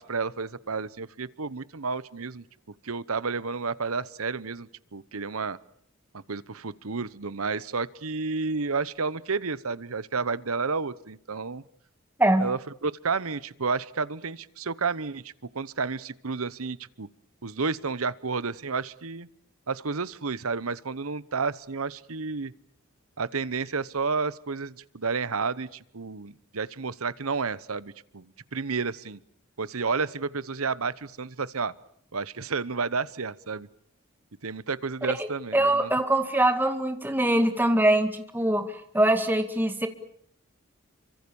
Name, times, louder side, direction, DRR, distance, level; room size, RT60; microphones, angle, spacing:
voice 1, 0.0-2.4 2.8-5.6 6.1-11.6 12.4-17.1 17.4-19.3 19.7-22.5 23.2-28.3 28.5-29.2 29.6-31.7 32.1-33.7 34.4-35.9, right 4 dB, 85° right, 17 dB, 1.0 m, -31 dB
voice 2, 35.2-39.9, right 1 dB, 10° right, 7 dB, 2.0 m, -23 dB
28.0 x 25.0 x 7.1 m, 0.66 s
head